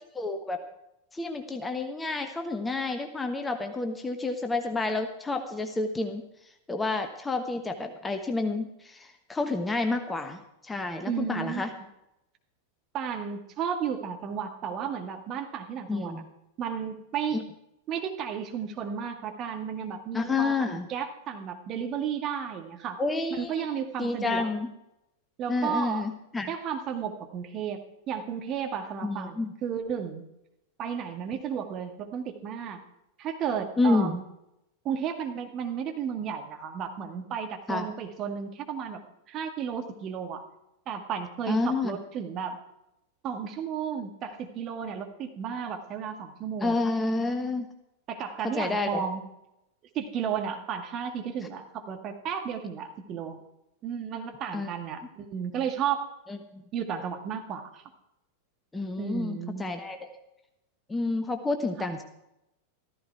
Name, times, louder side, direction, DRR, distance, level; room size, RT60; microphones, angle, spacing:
voice 1, 0.1-0.6 1.1-6.2 6.7-11.7 15.9-16.3 17.3-17.4 20.1-20.9 23.0-23.7 24.0-24.7 25.5-26.5 29.0-29.5 33.8-34.2 37.7-37.9 41.5-42.0 46.6-47.7 48.4-49.0 54.5-54.7 56.3-56.6 58.7-60.1 60.9-62.0, left 3 dB, 10° left, 6 dB, 1.3 m, -29 dB
voice 2, 11.1-11.7 12.9-16.2 16.6-17.4 17.9-23.0 23.4-24.5 25.4-26.0 26.5-27.8 28.1-30.2 30.8-32.8 33.2-34.2 34.8-39.0 39.3-40.4 40.9-42.6 43.2-46.8 48.1-49.2 49.9-53.4 53.8-56.1 56.7-57.8 59.0-59.6 61.8-61.9, right 7 dB, 35° right, 4 dB, 2.0 m, -33 dB
14.5 x 14.0 x 4.7 m, 0.87 s
figure-of-eight pair, 90°, 0 cm